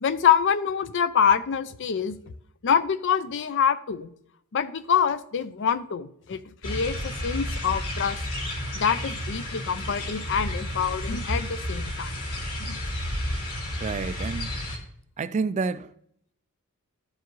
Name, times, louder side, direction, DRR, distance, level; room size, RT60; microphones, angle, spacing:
voice 1, 0.0-2.1 2.6-4.1 4.5-8.2 8.7-12.1 12.6-12.8, left 7 dB, 55° left, 0.5 m, -25 dB
sound 1, 6.6-14.8, left 1 dB, 75° left, 2.5 m, -31 dB
voice 2, 13.8-14.6 15.2-15.9, right 4 dB, 30° right, 0.3 m, -29 dB
13.0 x 4.7 x 3.0 m
head